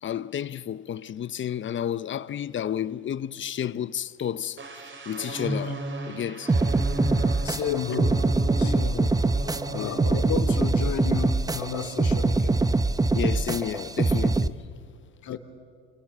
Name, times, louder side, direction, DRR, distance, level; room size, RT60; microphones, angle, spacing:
voice 1, 0.0-4.6 5.1-5.8 6.1-6.5 8.9-9.1 9.7-10.2 13.1-14.6 15.3-15.4, left 9 dB, 30° left, 0.8 m, -31 dB
sound 1, 4.6-10.3 10.6-10.9, right 1 dB, 30° right, 3.7 m, -35 dB
sound 2, 6.5-14.5, right 3 dB, 10° right, 0.8 m, -24 dB
voice 2, 7.0-12.6 15.2-15.4, left 7 dB, 50° left, 3.1 m, -33 dB
30.0 x 23.5 x 7.3 m
supercardioid pair, 85°, 37 cm